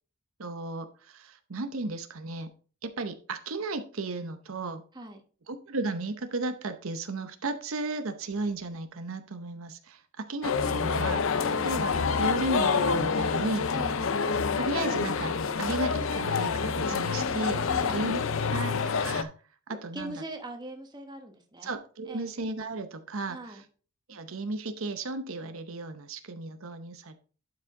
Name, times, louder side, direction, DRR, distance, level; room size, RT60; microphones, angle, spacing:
voice 1, 0.4-2.5 2.8-4.8 5.5-11.2 11.6-11.9 12.2-13.6 14.6-17.6 17.9-19.3 19.7-20.2 21.6-23.6 24.1-27.2, right 2 dB, 70° right, 8 dB, 0.8 m, -34 dB
sound 1, 10.4-19.2, left 5 dB, 65° left, 0.6 m, -27 dB
voice 2, 11.4-11.7 13.7-14.0 17.7-18.0 19.7-21.7 22.0-22.2 23.3-23.6, right 1 dB, 20° right, 4 dB, 1.1 m, -41 dB
11.5 x 4.9 x 3.7 m, 0.39 s
head